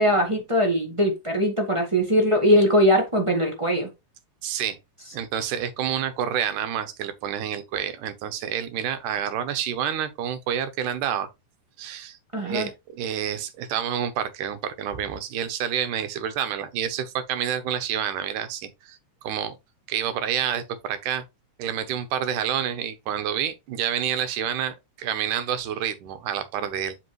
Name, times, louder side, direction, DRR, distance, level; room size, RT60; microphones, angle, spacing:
voice 1, 0.0-3.9 12.3-12.7, equal, 25° right, 0.6 m, -21 dB
voice 2, 4.4-4.8 5.1-11.3 11.8-19.0 19.2-19.6 19.9-21.2 21.6-27.0, right 9 dB, 80° right, 2.5 m, -28 dB
7.7 x 5.3 x 3.1 m
omnidirectional pair, 3.6 m